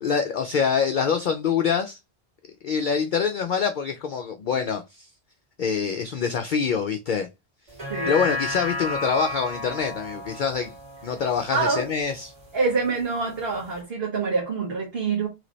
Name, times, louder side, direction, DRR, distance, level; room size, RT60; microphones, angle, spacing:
voice 1, 0.0-2.0 2.6-5.1 5.6-7.3 8.0-10.7 11.0-12.3, left 6 dB, 55° left, 0.6 m, -25 dB
sound 1, 7.7-12.3 12.7-12.8, left 2 dB, 35° right, 2.2 m, -33 dB
voice 2, 11.5-11.9 12.5-15.3, right 4 dB, 60° right, 1.5 m, -26 dB
3.2 x 3.1 x 3.9 m
omnidirectional pair, 1.1 m